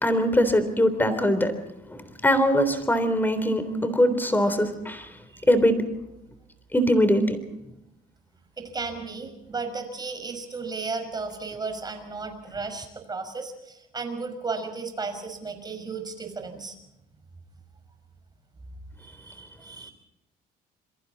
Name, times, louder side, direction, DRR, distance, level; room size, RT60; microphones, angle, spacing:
voice 1, 0.0-1.5 1.9-5.1 5.5-5.8 6.7-7.4, equal, 10° left, 11 dB, 3.6 m, -22 dB
voice 2, 8.6-16.7 19.1-19.9, right 4 dB, 25° right, 6 dB, 5.6 m, -34 dB
28.5 x 22.5 x 4.2 m, 0.92 s
cardioid pair, 110°, 17 cm